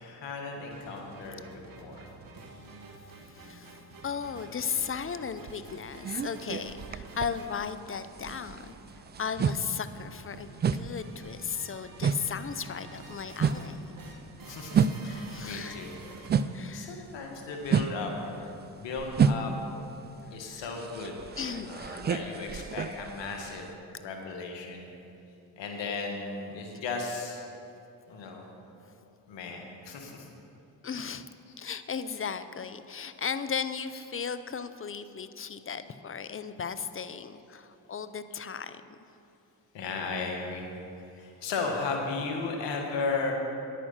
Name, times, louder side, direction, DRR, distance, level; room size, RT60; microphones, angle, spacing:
voice 1, 0.0-2.0 14.5-16.4 16.7-18.5 18.7-19.5 20.3-21.2 21.6-24.9 25.6-27.4 28.1-28.5 29.3-30.3 31.5-31.6 32.1-32.2 39.7-40.7 41.0-43.3, left 4 dB, 80° left, 2 dB, 1.7 m, -36 dB
sound 1, 0.7-16.4, right 3 dB, 50° right, 1.7 m, -49 dB
voice 2, 3.2-3.8 4.0-8.8 9.2-13.9 15.3-15.8 16.5-17.1 20.4-20.7 21.4-21.8 28.8-28.9 30.8-31.3 31.6-39.0, left 6 dB, 30° left, 12 dB, 0.6 m, -36 dB
sound 2, 5.5-16.8 17.1-23.7, right 6 dB, 25° right, 0.3 m, -30 dB
9.7 x 9.2 x 5.7 m, 2.8 s
supercardioid pair, 55°, 43 cm